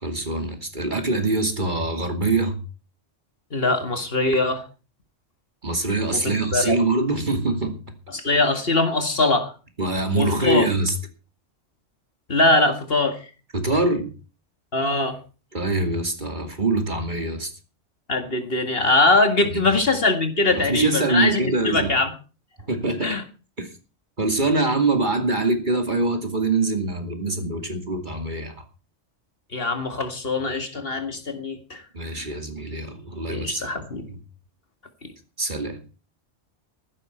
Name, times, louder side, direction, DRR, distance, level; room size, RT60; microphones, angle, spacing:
voice 1, 0.0-2.6 5.6-7.8 9.8-10.9 13.5-14.1 15.5-17.5 19.5-19.8 20.5-22.0 22.7-23.2 23.6-23.7 24.2-28.6 31.9-34.2 35.4-35.8, right 2 dB, 40° right, 2.7 m, -24 dB
voice 2, 3.5-4.6 6.1-6.8 8.1-9.5 10.2-10.7 12.3-13.2 14.7-15.2 18.1-22.1 23.0-23.2 29.5-31.8 33.3-34.0, left 2 dB, 50° left, 2.2 m, -22 dB
14.5 x 12.0 x 4.5 m
omnidirectional pair, 1.2 m